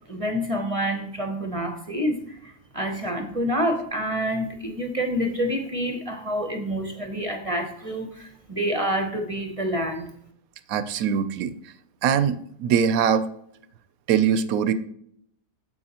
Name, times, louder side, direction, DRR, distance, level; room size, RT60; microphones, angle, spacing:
voice 1, 0.1-10.1, equal, 35° right, 3 dB, 0.6 m, -28 dB
voice 2, 10.7-11.5 12.0-13.3 14.1-14.7, right 7 dB, 70° right, 13 dB, 0.9 m, -22 dB
9.5 x 7.4 x 2.9 m, 0.69 s
omnidirectional pair, 1.7 m